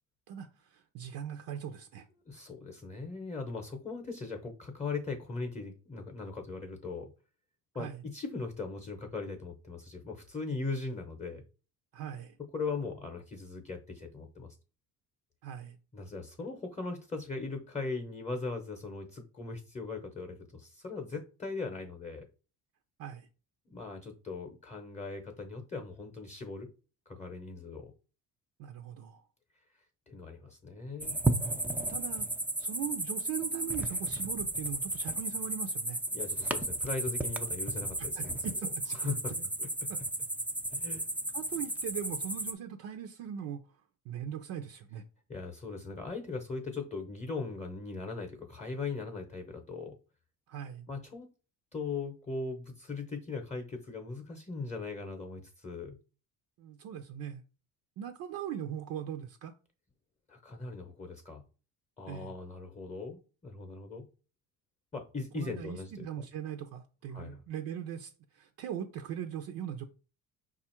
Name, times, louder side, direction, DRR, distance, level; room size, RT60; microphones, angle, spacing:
voice 1, 0.3-2.1 7.8-8.0 11.9-12.4 15.4-15.8 23.0-23.3 28.6-29.2 31.9-32.3 32.6-36.0 38.0-39.1 39.9-40.0 41.3-43.8 44.0-45.0 50.5-50.9 56.6-57.4 58.0-59.5 62.1-62.3 65.3-69.8, right 9 dB, 70° right, 0.6 m, -40 dB
voice 2, 2.3-7.1 7.7-11.4 12.5-14.5 15.9-22.3 23.7-26.7 27.1-27.9 30.1-31.2 36.1-38.4 39.0-39.3 39.6-39.7 40.7-41.1 45.3-50.0 50.9-51.3 51.7-56.0 60.3-61.4 62.0-64.0 64.9-66.1 67.1-67.4, left 4 dB, 20° left, 0.7 m, -39 dB
sound 1, 31.0-42.5, right 2 dB, 5° right, 0.3 m, -34 dB
5.0 x 2.4 x 4.3 m
cardioid pair, 120°, 35 cm